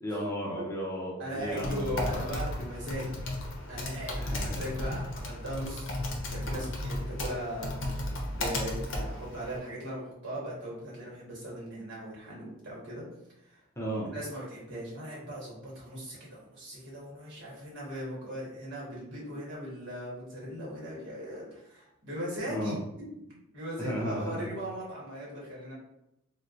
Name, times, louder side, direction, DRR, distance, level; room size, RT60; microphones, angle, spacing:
voice 1, 0.0-2.2 4.2-4.6 13.8-14.1 22.5-22.8 23.8-24.5, equal, 15° left, -4 dB, 0.6 m, -34 dB
voice 2, 1.2-3.1 3.7-5.9 6.3-7.7 8.3-13.0 13.4-13.6 14.0-22.8 23.5-25.7, equal, 60° right, -5 dB, 1.4 m, -39 dB
Typing, 1.4-9.6, left 1 dB, 60° left, 0.7 m, -34 dB
4.3 x 2.2 x 2.5 m, 0.83 s
head